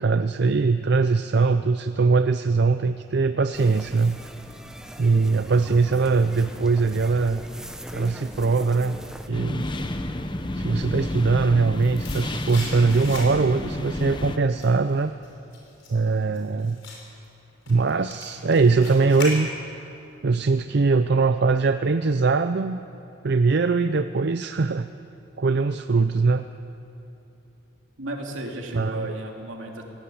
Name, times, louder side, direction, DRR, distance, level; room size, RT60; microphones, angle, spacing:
voice 1, 0.0-4.2 5.0-7.4 7.9-9.0 9.3-9.7 10.6-15.1 15.9-16.8 17.7-19.5 20.2-22.8 23.2-24.9 25.4-26.4 28.7-29.1, right 4 dB, 55° right, 10 dB, 0.5 m, -21 dB
sound 1, 3.5-9.3, equal, 5° right, 1.0 m, -41 dB
sound 2, 9.3-14.4, left 1 dB, 25° left, 0.9 m, -30 dB
sound 3, 11.7-13.7 14.0-19.9 20.2-20.3, left 3 dB, 70° left, 5.8 m, -39 dB
voice 2, 28.0-29.8, right 1 dB, 75° right, 1 dB, 2.8 m, -34 dB
20.0 x 17.0 x 8.5 m, 2.9 s
head